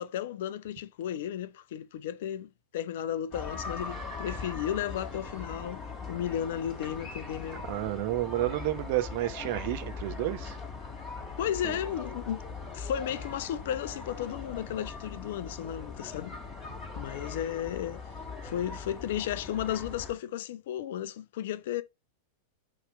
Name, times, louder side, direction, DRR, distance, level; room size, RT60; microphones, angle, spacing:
voice 1, 0.0-7.6 11.4-12.4 12.7-16.4 17.0-18.0 18.4-21.8, left 10 dB, 55° left, 0.5 m, -34 dB
sound 1, 3.3-20.1, left 4 dB, 25° left, 2.8 m, -41 dB
voice 2, 7.5-10.6 11.6-11.8, right 15 dB, 50° right, 0.9 m, -31 dB
7.2 x 3.2 x 5.0 m
figure-of-eight pair, 90°, 0 cm